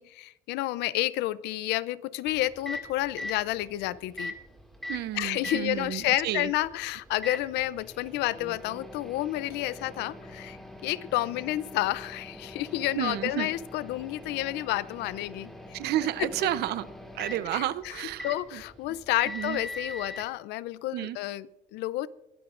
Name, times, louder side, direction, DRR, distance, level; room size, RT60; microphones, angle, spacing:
voice 1, 0.0-4.3 5.1-15.5 16.2-16.3 17.5-22.1, left 16 dB, 85° left, 0.5 m, -30 dB
Microwave oven, 2.2-20.3, left 1 dB, ahead, 2.1 m, -43 dB
voice 2, 4.9-6.5 13.0-13.5 15.7-16.9 17.1-18.3 18.5-18.6 19.3-19.6 20.9-21.2, right 13 dB, 75° right, 0.7 m, -31 dB
22.0 x 13.0 x 2.5 m
cardioid pair, 110°, 17 cm